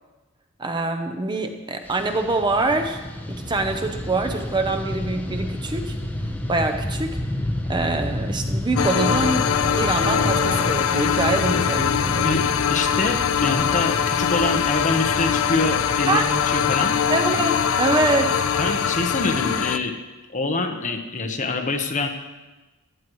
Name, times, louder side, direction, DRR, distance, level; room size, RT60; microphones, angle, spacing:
voice 1, 0.6-3.0 3.3-5.9 6.5-7.1 7.7-12.3 16.1-16.2 17.1-18.3, right 2 dB, 20° right, 6 dB, 0.7 m, -24 dB
Fixed-wing aircraft airplane, 1.8-19.3, left 1 dB, 10° left, 0.8 m, -31 dB
sound 1, 8.7-19.8, left 7 dB, 70° left, 0.5 m, -22 dB
voice 2, 12.2-17.0 18.6-19.9 20.3-22.1, left 3 dB, 35° left, 4 dB, 1.0 m, -25 dB
15.5 x 12.0 x 3.1 m, 1.2 s
head